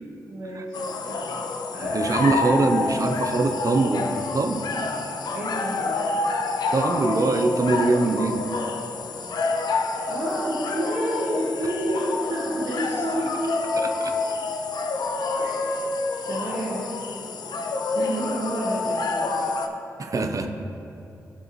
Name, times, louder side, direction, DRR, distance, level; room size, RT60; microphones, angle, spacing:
voice 1, 0.3-2.3 5.3-6.0 10.1-13.3 15.4-15.6 16.3-16.8 17.3-17.6 17.9-19.5, right 1 dB, 70° right, -6 dB, 1.2 m, -30 dB
sound 1, 0.7-19.7, left 3 dB, 70° left, 0.5 m, -28 dB
voice 2, 1.8-4.7 6.7-8.5 13.7-14.1 20.0-20.5, right 3 dB, 50° right, 6 dB, 0.7 m, -23 dB
11.5 x 4.7 x 3.1 m, 2.8 s
supercardioid pair, 40°, 7 cm